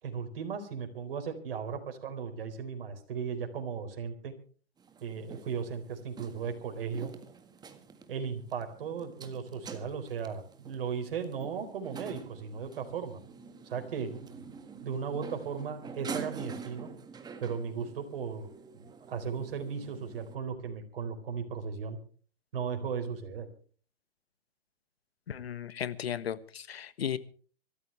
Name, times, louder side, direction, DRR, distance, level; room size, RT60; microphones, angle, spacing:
voice 1, 0.0-4.3 5.0-7.1 8.1-13.2 13.6-16.9 17.4-18.5 18.7-22.0 22.5-23.5, right 6 dB, 65° right, 5 dB, 4.3 m, -36 dB
sound 1, 4.8-20.3, right 5 dB, 15° right, 1.7 m, -46 dB
voice 2, 25.3-27.2, left 9 dB, 80° left, 15 dB, 1.4 m, -35 dB
25.5 x 14.0 x 3.3 m, 0.41 s
hypercardioid pair, 130°, 30 cm